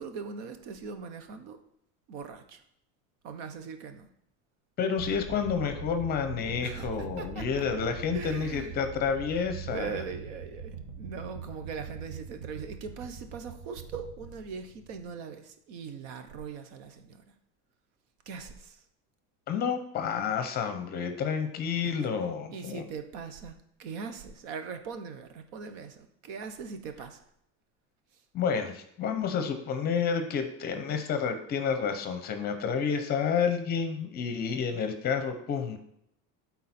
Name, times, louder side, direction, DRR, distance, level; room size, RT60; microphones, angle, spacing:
voice 1, 0.0-1.6 2.1-2.6 3.2-4.1 6.6-7.7 8.1-8.7 9.7-17.2 18.3-18.8 21.8-22.1 22.5-27.2, right 5 dB, 85° right, 8 dB, 1.1 m, -41 dB
voice 2, 4.8-10.0 19.5-22.8 28.3-35.8, left 6 dB, 25° left, 7 dB, 0.7 m, -30 dB
sound 1, 5.0-15.1, right 5 dB, 65° right, 1.8 m, -42 dB
12.5 x 4.2 x 4.3 m, 0.73 s
cardioid pair, 180°, 35 cm